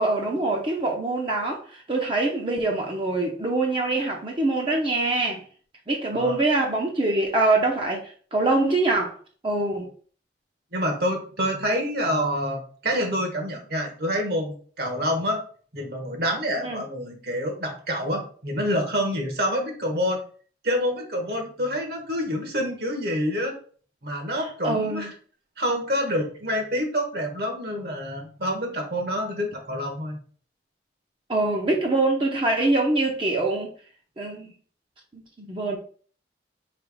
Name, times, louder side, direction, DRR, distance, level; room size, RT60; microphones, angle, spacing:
voice 1, 0.0-5.4 5.9-9.2 9.4-9.9 16.6-16.8 24.4-25.1 31.3-33.7 34.2-34.5 35.1-35.8, right 2 dB, 30° right, 0 dB, 0.6 m, -24 dB
voice 2, 10.7-15.4 15.7-20.2 20.6-23.5 24.0-25.1 25.6-30.2, equal, 60° right, 3 dB, 1.2 m, -27 dB
3.3 x 3.0 x 4.7 m, 0.44 s
head